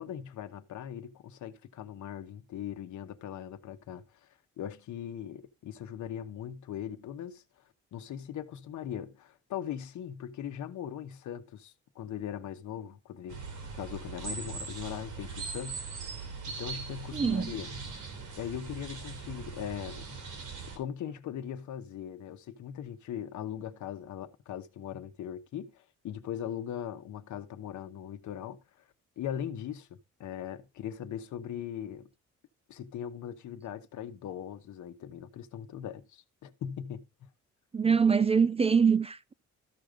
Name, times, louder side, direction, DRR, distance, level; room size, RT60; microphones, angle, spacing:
voice 1, 0.0-4.3 4.6-7.4 7.9-16.1 16.5-18.0 18.4-20.1 20.8-28.6 29.2-32.1 32.7-37.0, left 9 dB, 75° left, 1.1 m, -40 dB
sound 1, 13.3-20.8, right 5 dB, 80° right, 3.1 m, -40 dB
voice 2, 17.1-17.6 37.7-39.3, right 6 dB, 20° right, 0.4 m, -24 dB
13.5 x 5.1 x 3.7 m
cardioid pair, 90°, 30 cm